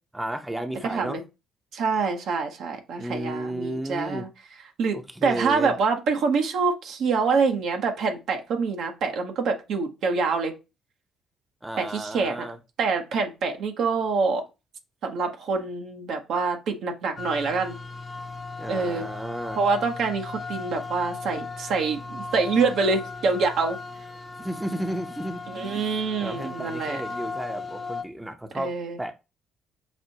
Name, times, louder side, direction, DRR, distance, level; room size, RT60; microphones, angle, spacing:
voice 1, 0.1-1.2 3.0-4.3 4.9-5.7 11.6-12.6 18.6-19.6 24.4-29.1, right 1 dB, 10° right, 0.8 m, -33 dB
voice 2, 0.8-1.2 1.7-4.3 4.8-10.5 11.8-12.5 12.8-14.4 15.0-17.8 18.7-19.1 19.6-23.8 25.5-27.0 28.5-29.0, right 4 dB, 65° right, 0.9 m, -26 dB
Elevator(Clean), 17.2-28.0, left 4 dB, 30° left, 0.7 m, -37 dB
6.1 x 2.5 x 2.8 m
hypercardioid pair, 45°, 0 cm